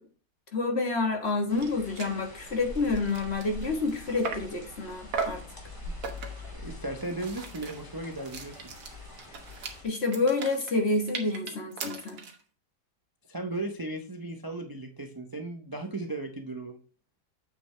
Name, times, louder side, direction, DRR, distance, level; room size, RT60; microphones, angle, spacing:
voice 1, 0.5-5.4 9.8-12.2, left 3 dB, 40° left, 3 dB, 1.6 m, -28 dB
sound 1, 1.3-1.4 1.6-1.7 2.0-2.2 2.6-4.6 5.1-5.5 6.0-6.5 7.0-12.4, right 5 dB, 60° right, 1.7 m, -38 dB
sound 2, 1.5-9.8, left 2 dB, 10° left, 2.5 m, -44 dB
voice 2, 6.5-8.7 13.3-16.8, right 2 dB, 30° right, 5 dB, 0.4 m, -36 dB
7.8 x 6.0 x 3.3 m, 0.39 s
omnidirectional pair, 1.9 m